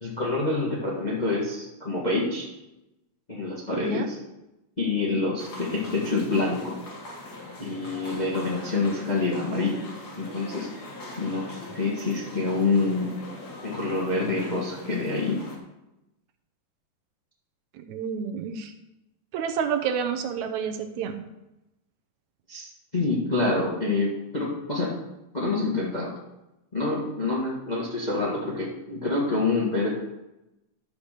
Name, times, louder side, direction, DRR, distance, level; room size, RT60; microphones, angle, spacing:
voice 1, 0.0-2.5 3.3-4.2 4.8-6.7 7.6-9.8 10.1-10.7 11.2-13.1 13.6-15.4 22.5-24.9 25.3-26.1 26.7-29.9, left 3 dB, 80° left, -4 dB, 0.4 m, -27 dB
sound 1, 5.4-15.6, left 1 dB, 50° left, 1.1 m, -41 dB
voice 2, 17.9-18.7 19.3-21.2, right 7 dB, 75° right, 7 dB, 1.8 m, -29 dB
11.5 x 5.0 x 6.6 m, 0.95 s
omnidirectional pair, 4.0 m